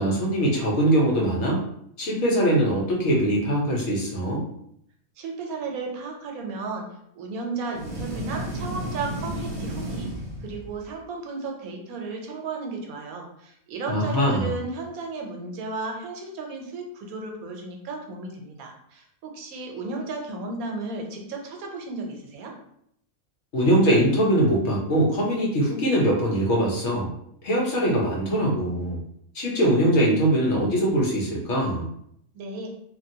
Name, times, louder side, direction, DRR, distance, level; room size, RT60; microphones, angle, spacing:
voice 1, 0.0-1.6 2.0-4.4 13.9-14.5 23.5-27.1 27.4-29.0 29.3-31.8, right 1 dB, 60° left, -3 dB, 1.0 m, -22 dB
voice 2, 5.2-6.9 7.1-10.1 10.4-22.5 32.3-32.7, right 3 dB, 80° right, 2 dB, 1.1 m, -34 dB
sound 1, 7.7-10.9, right 1 dB, 50° right, 0.4 m, -32 dB
2.9 x 2.5 x 2.7 m, 0.72 s
omnidirectional pair, 1.5 m